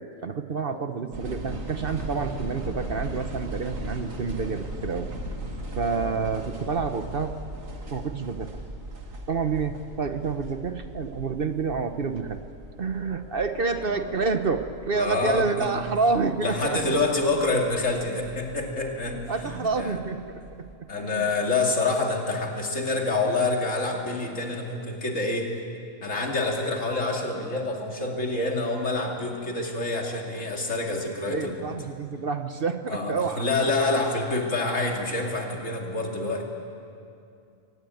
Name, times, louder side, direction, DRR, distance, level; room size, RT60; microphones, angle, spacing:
voice 1, 0.0-5.1 5.8-7.3 7.9-8.6 9.3-12.4 12.8-16.8 19.1-20.7 21.0-21.3 31.3-33.4, right 4 dB, 50° right, 9 dB, 1.0 m, -28 dB
sound 1, 1.1-20.7, right 1 dB, 85° right, 2.5 m, -39 dB
voice 2, 14.9-15.7 16.4-20.0 20.9-25.5 26.0-31.7 32.9-36.5, left 2 dB, 70° left, 1 dB, 3.0 m, -27 dB
23.5 x 18.5 x 9.3 m, 2.5 s
omnidirectional pair, 1.3 m